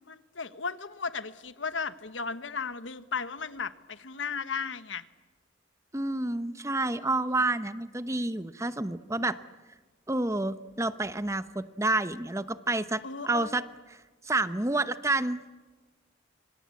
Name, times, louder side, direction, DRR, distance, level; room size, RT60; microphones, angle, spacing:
voice 1, 0.1-5.0 13.0-13.6, left 5 dB, 90° left, 13 dB, 1.3 m, -35 dB
voice 2, 5.9-9.4 10.1-13.6 13.9-14.0 14.2-15.4, right 2 dB, 15° right, 12 dB, 0.9 m, -29 dB
26.0 x 26.0 x 8.5 m, 1.3 s
head